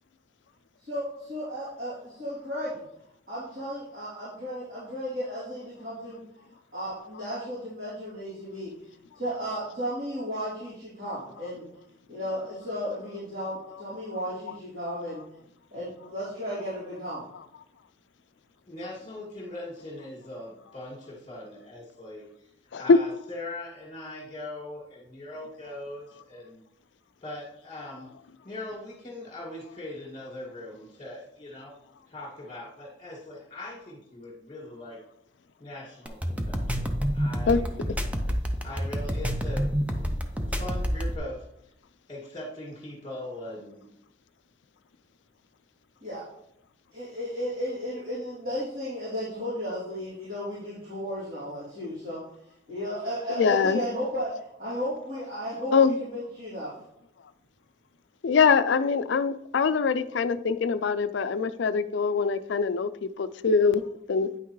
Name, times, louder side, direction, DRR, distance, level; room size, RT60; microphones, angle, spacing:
voice 1, 0.8-2.8 3.3-6.2 6.7-8.7 9.1-11.6 12.1-15.2 15.7-17.2 46.0-46.2 46.9-52.2 52.7-56.7, equal, 50° right, -11 dB, 3.1 m, -34 dB
voice 2, 18.7-22.5 22.8-26.6 27.2-28.1 28.4-31.7 32.1-35.0 35.6-37.9 38.6-41.5 42.1-43.9, left 1 dB, 30° left, -4 dB, 2.1 m, -41 dB
sound 1, 36.1-41.2, equal, 10° right, 0.6 m, -28 dB
voice 3, 53.4-53.8 55.7-55.9 58.2-62.9 63.2-63.8 64.1-64.3, left 5 dB, 65° left, 12 dB, 0.4 m, -23 dB
9.2 x 5.8 x 3.1 m, 0.76 s
head